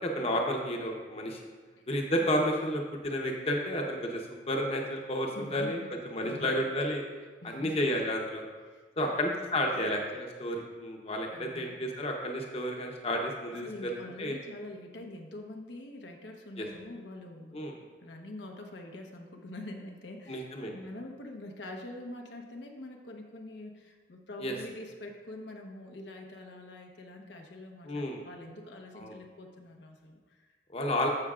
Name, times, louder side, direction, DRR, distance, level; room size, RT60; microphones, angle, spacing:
voice 1, 0.0-1.4 1.9-5.8 6.1-7.0 7.4-8.5 9.0-13.9 14.2-14.4 16.6-16.7 17.5-17.7 20.3-20.7 24.4-24.5 27.8-28.3 28.9-29.2 30.7-31.1, equal, 35° left, 1 dB, 0.8 m, -31 dB
voice 2, 5.3-5.9 6.2-6.6 7.4-7.7 8.7-9.7 11.3-11.7 13.5-30.5, left 1 dB, 85° left, 2 dB, 0.9 m, -45 dB
14.5 x 5.7 x 2.4 m, 1.4 s
head